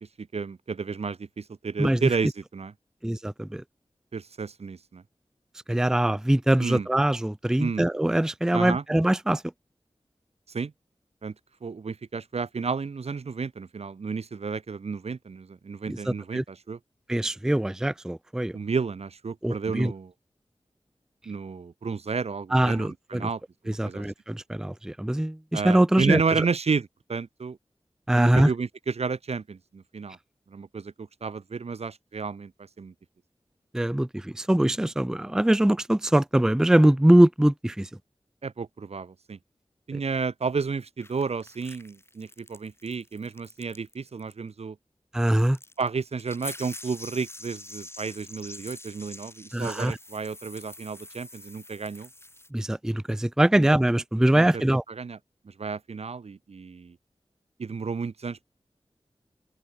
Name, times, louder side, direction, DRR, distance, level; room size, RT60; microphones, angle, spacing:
voice 1, 0.2-2.7 4.1-5.0 6.6-6.9 7.6-7.9 8.5-8.8 10.5-10.7 11.2-11.3 11.6-16.8 18.5-20.1 21.3-24.0 25.5-27.6 28.1-30.2 30.5-32.5 32.8-32.9 38.4-39.4 39.9-44.8 45.8-52.1 53.5-53.7 54.3-54.6 54.9-55.2 55.4-57.0 57.6-58.5, right 5 dB, 70° right, 0.8 m, -32 dB
voice 2, 3.0-3.6 5.7-9.4 15.9-16.0 16.3-16.4 17.1-18.5 19.4-19.9 22.5-23.3 23.8-26.4 28.1-28.5 33.7-37.9 45.1-45.6 49.5-50.0 52.5-54.8, right 1 dB, 5° right, 0.4 m, -22 dB
sound 1, 41.0-43.9 44.2-44.3 45.5-52.5, left 1 dB, 20° left, 1.1 m, -45 dB
open air
wide cardioid pair, 50°, 11 cm